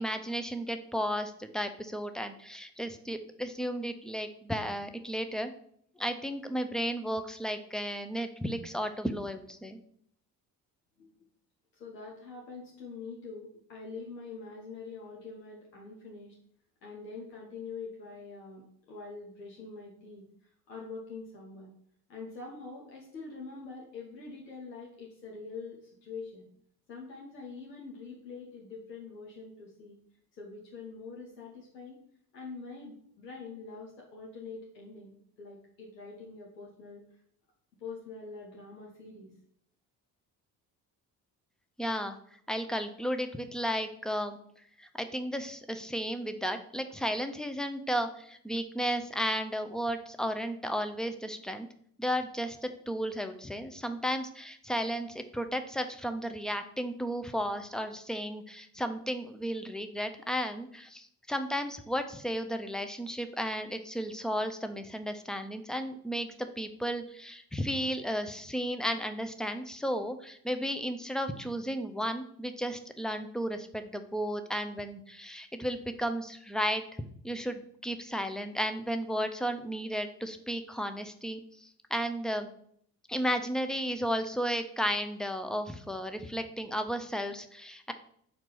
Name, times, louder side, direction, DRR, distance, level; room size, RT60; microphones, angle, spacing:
voice 1, 0.0-5.5 6.0-9.8 41.8-42.2 42.5-44.4 44.8-51.7 52.0-76.8 77.2-82.5 83.1-87.9, equal, ahead, 8 dB, 0.6 m, -34 dB
voice 2, 11.7-16.3 16.8-20.2 20.7-21.7 22.1-26.5 26.9-30.0 30.4-32.0 32.3-35.1 35.4-37.0 37.8-39.3, left 4 dB, 80° left, -3 dB, 1.0 m, -44 dB
5.1 x 4.5 x 5.8 m, 0.65 s
figure-of-eight pair, 45°, 49 cm